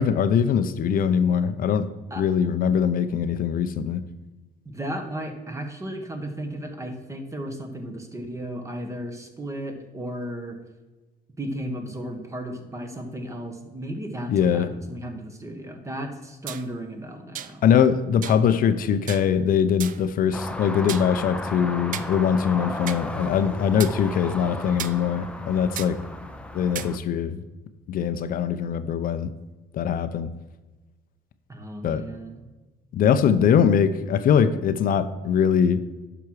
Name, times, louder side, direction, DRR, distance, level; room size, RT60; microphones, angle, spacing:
voice 1, 0.0-1.9 2.2-4.0 14.3-14.8 17.6-26.0 26.5-27.4 27.9-29.3 29.7-30.3 31.8-32.0 32.9-35.8, left 7 dB, 55° left, 10 dB, 0.6 m, -22 dB
voice 2, 4.6-10.6 11.4-17.6 31.5-32.4, right 1 dB, 20° right, 5 dB, 1.5 m, -34 dB
sound 1, 16.5-16.7 17.3-17.6 18.2-18.4 19.1-19.3 19.8-20.1 20.9-21.1 21.9-22.1 22.9-23.0 23.8-23.9 24.8-25.0 25.8-25.9 26.7-26.9, right 10 dB, 50° right, 0.5 m, -34 dB
sound 2, 20.3-27.0, left 1 dB, 5° left, 0.6 m, -35 dB
10.5 x 6.0 x 4.8 m, 1.2 s
cardioid pair, 110°, 17 cm